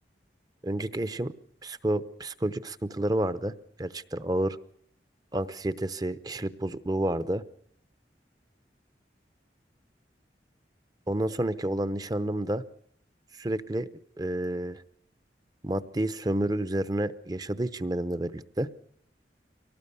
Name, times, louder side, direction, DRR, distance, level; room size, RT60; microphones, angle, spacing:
voice 1, 0.6-1.3 1.6-3.5 3.8-4.6 5.3-7.4 11.1-12.6 13.3-13.9 14.2-14.8 15.6-18.7, right 1 dB, 20° right, 14 dB, 0.8 m, -30 dB
24.0 x 18.5 x 6.8 m, 0.64 s
head